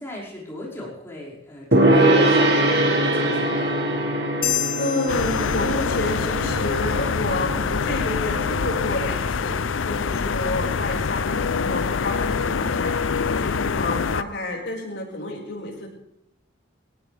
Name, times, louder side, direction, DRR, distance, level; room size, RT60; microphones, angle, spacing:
voice 1, 0.0-2.6 2.9-3.8, left 1 dB, 15° left, -6 dB, 5.6 m, -38 dB
Gong, 1.7-9.2, right 1 dB, 55° right, 2.3 m, -22 dB
sound 1, 4.4-6.3, left 11 dB, 45° left, 1.5 m, -29 dB
voice 2, 4.8-12.9 13.3-15.9, left 2 dB, 70° left, -2 dB, 5.4 m, -29 dB
sound 2, 5.1-14.2, left 5 dB, 85° left, 0.6 m, -25 dB
21.0 x 18.0 x 3.5 m, 0.79 s
head